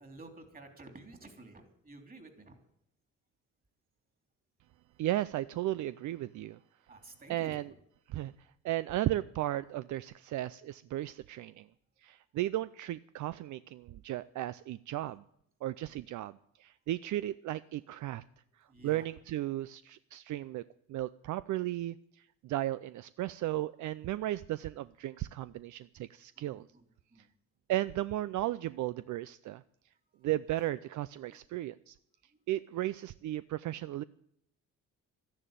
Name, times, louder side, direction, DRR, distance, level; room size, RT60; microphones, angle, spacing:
voice 1, 0.0-2.6 6.9-7.8 18.7-19.0 26.4-26.8 27.1-27.3 31.3-31.4, right 2 dB, 30° right, 6 dB, 3.3 m, -52 dB
voice 2, 5.0-6.6 7.3-7.7 8.1-8.3 8.6-11.7 12.0-15.2 15.6-18.2 18.6-20.6 20.9-26.7 27.7-29.6 30.2-32.0 32.5-34.0, right 14 dB, 75° right, 15 dB, 0.5 m, -35 dB
12.5 x 10.5 x 9.0 m, 0.72 s
cardioid pair, 90°, 30 cm